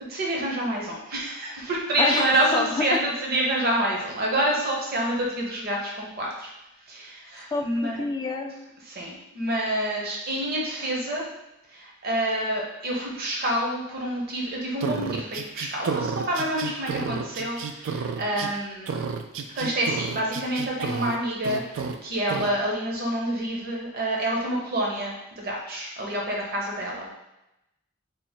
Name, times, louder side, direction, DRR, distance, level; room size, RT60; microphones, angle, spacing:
voice 1, 0.1-6.5 6.9-8.0 8.8-11.3 11.7-19.0 19.5-27.1, right 1 dB, 50° right, -2 dB, 0.8 m, -27 dB
voice 2, 2.0-2.8 7.5-8.5, left 3 dB, 20° left, 2 dB, 0.3 m, -28 dB
sound 1, 14.8-18.5 18.9-21.2 21.4-22.0 22.3-22.5, right 5 dB, 70° right, 0.3 m, -31 dB
3.5 x 2.1 x 4.3 m, 0.90 s
head